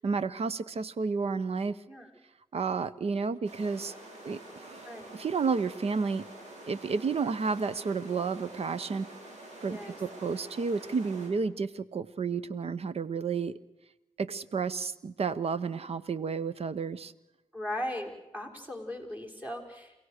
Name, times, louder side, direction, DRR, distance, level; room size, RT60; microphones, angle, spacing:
voice 1, 0.0-1.8 2.5-3.9 4.2-4.8 5.1-6.3 6.7-9.1 9.6-13.5 14.2-17.1, right 5 dB, 60° right, 16 dB, 1.0 m, -31 dB
sound 1, 3.4-11.3, right 1 dB, 80° right, 6.3 m, -47 dB
voice 2, 4.8-5.2 9.7-10.0 17.5-19.9, left 1 dB, 15° right, 3 dB, 5.6 m, -38 dB
29.0 x 17.0 x 6.6 m, 0.94 s
cardioid pair, 60°, 12 cm